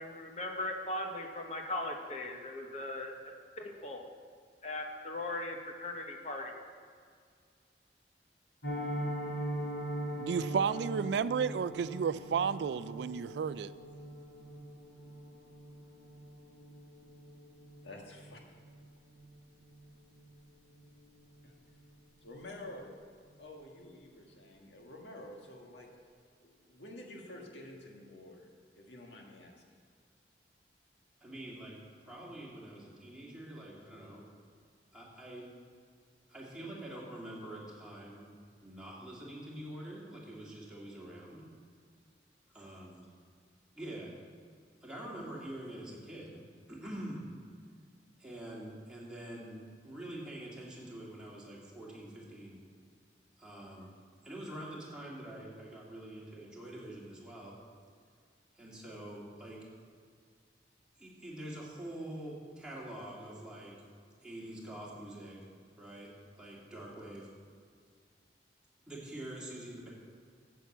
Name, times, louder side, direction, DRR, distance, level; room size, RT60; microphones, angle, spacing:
voice 1, 0.0-4.0 4.6-6.5, left 2 dB, 40° left, 2 dB, 1.1 m, -39 dB
Piano, 8.6-19.5 19.8-20.0 20.3-20.5 20.8-21.1 21.4-21.5, right 1 dB, 70° left, 2.1 m, -41 dB
voice 2, 10.2-13.7, right 6 dB, 75° right, 16 dB, 0.3 m, -32 dB
voice 3, 17.8-18.4 21.4-21.5 22.2-23.0 23.4-25.9 26.4-28.5 28.8-29.6, left 1 dB, 90° left, 1 dB, 1.7 m, -49 dB
voice 4, 31.2-31.8 32.0-34.3 34.9-35.5 36.3-38.3 38.6-41.4 42.5-43.1 43.8-44.1 44.8-46.4 46.7-47.3 48.2-52.6 53.4-53.9 54.2-57.5 58.6-59.7 61.0-63.7 64.2-65.4 65.8-66.1 66.4-67.3 68.9-69.9, right 1 dB, 5° right, -6 dB, 2.5 m, -45 dB
9.0 x 8.1 x 7.4 m, 2.1 s
head